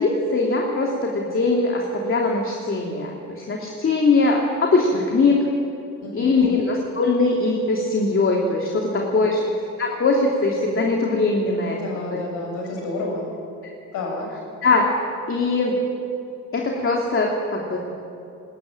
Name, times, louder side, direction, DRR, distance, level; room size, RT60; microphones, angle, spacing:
voice 1, 0.0-5.4 6.1-9.4 9.8-11.8 12.1-12.2 14.6-14.9 15.3-15.8 16.5-17.8, left 3 dB, 45° left, -1 dB, 3.0 m, -21 dB
voice 2, 6.0-6.6 8.8-9.4 11.7-13.2 13.9-14.3, left 2 dB, 85° left, 1 dB, 7.1 m, -31 dB
20.0 x 19.5 x 9.0 m, 2.6 s
cardioid pair, 90°, 30 cm